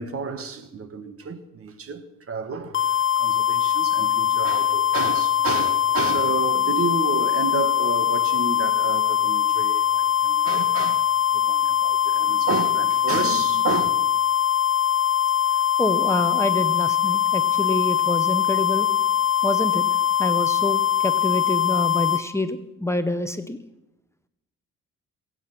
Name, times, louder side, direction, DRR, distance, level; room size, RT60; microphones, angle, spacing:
voice 1, 0.0-14.0, right 5 dB, 50° right, 1.6 m, -31 dB
sound 1, 2.7-22.2, left 10 dB, 40° left, 1.7 m, -22 dB
voice 2, 15.8-18.9 19.4-19.8 20.2-23.6, left 1 dB, 10° left, 0.9 m, -27 dB
22.5 x 8.8 x 6.0 m
cardioid pair, 90°, 30 cm